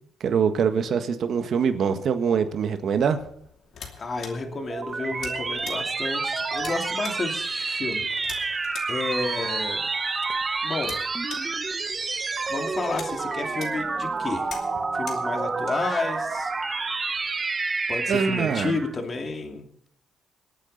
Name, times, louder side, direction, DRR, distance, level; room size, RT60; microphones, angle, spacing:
voice 1, 0.2-3.2 18.1-18.8, right 6 dB, 65° right, 1.6 m, -24 dB
sound 1, 3.2-17.5, left 6 dB, 65° left, 2.7 m, -46 dB
voice 2, 4.0-8.0 8.9-9.9 10.6-11.0 12.5-14.5 14.9-16.5 17.9-19.9, left 3 dB, 40° left, 2.7 m, -31 dB
sound 2, 4.3-19.0, right 4 dB, 30° right, 1.2 m, -29 dB
26.0 x 8.9 x 4.2 m
cardioid pair, 90°, 0 cm